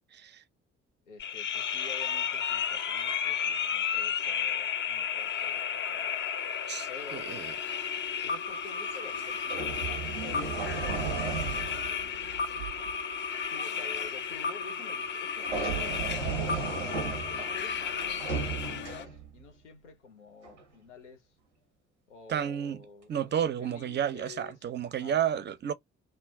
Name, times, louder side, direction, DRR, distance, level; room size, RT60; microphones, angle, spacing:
voice 1, 0.1-0.4 6.7-7.5 22.3-22.8 23.1-25.7, right 9 dB, 30° right, 0.5 m, -31 dB
voice 2, 1.1-6.3 6.9-7.4 8.2-11.0 11.5-12.4 13.5-16.9 17.3-21.4 22.1-25.4, left 4 dB, 85° left, 0.7 m, -50 dB
sound 1, 1.2-19.0, left 7 dB, 35° left, 0.5 m, -33 dB
sound 2, 8.8-9.0 9.5-13.0 15.4-19.4 20.4-20.6, right 5 dB, 90° right, 0.6 m, -35 dB
2.3 x 2.1 x 3.3 m
figure-of-eight pair, 40°, 35 cm